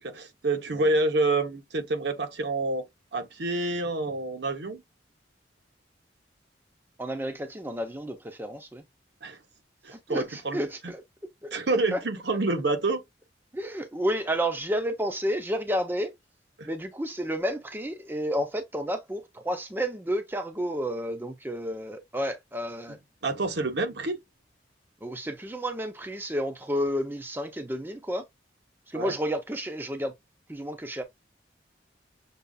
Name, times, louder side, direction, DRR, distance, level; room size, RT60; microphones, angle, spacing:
voice 1, 0.0-2.8 3.1-4.8 9.2-9.4 9.8-10.6 11.5-13.0 16.6-16.7 23.2-24.2 28.9-29.1, right 2 dB, 65° right, 0.8 m, -28 dB
voice 2, 7.0-8.8 9.9-11.0 11.4-11.5 11.9-12.0 13.5-16.1 16.7-23.0 25.0-28.2 28.9-30.1 30.5-31.0, equal, 10° right, 0.5 m, -31 dB
6.7 x 2.4 x 2.3 m
head